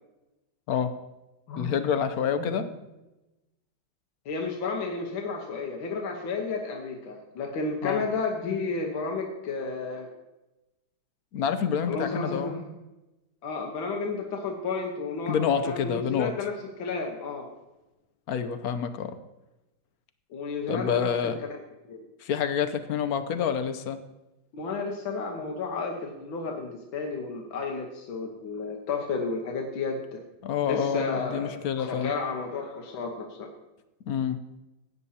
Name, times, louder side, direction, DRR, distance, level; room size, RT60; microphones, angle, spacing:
voice 1, 1.6-2.7 7.8-8.0 11.3-12.5 15.3-16.3 18.3-19.2 20.7-21.4 22.2-24.0 30.4-32.1 34.0-34.4, left 7 dB, 65° left, 10 dB, 1.0 m, -28 dB
voice 2, 4.3-10.1 11.9-12.7 13.4-17.5 20.3-21.3 21.9-22.1 24.5-30.2 30.7-33.5, left 4 dB, 85° left, 1 dB, 1.9 m, -32 dB
16.0 x 9.3 x 2.8 m, 1.0 s
omnidirectional pair, 2.1 m